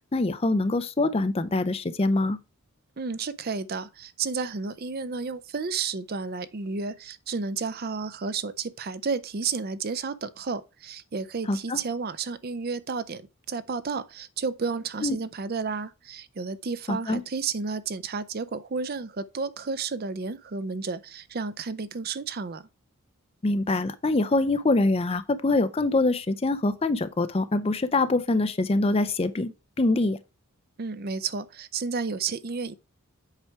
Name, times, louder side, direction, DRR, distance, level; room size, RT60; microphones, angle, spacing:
voice 1, 0.1-2.4 11.5-11.8 15.0-15.2 16.9-17.2 23.4-29.5 29.8-30.2, left 2 dB, 25° left, 0.5 m, -24 dB
voice 2, 3.0-13.2 13.5-22.7 30.8-32.7, right 5 dB, 45° right, 0.5 m, -32 dB
8.1 x 4.7 x 4.5 m
head